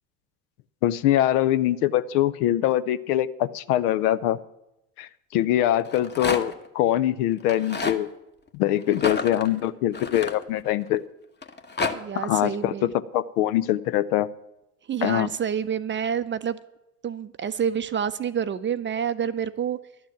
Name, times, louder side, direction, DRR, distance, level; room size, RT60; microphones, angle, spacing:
voice 1, 0.8-4.4 5.0-8.1 8.5-11.0 12.1-14.3 15.0-15.3, left 12 dB, 70° left, 15 dB, 0.7 m, -23 dB
Rattle, 5.8-6.7 7.4-8.0 8.9-10.9 11.4-11.9, left 4 dB, 20° left, 1.1 m, -30 dB
voice 2, 11.9-12.9 14.9-16.6 17.0-19.8, right 8 dB, 25° right, 13 dB, 0.5 m, -28 dB
12.0 x 6.8 x 9.0 m, 0.88 s
hypercardioid pair, 70°, 48 cm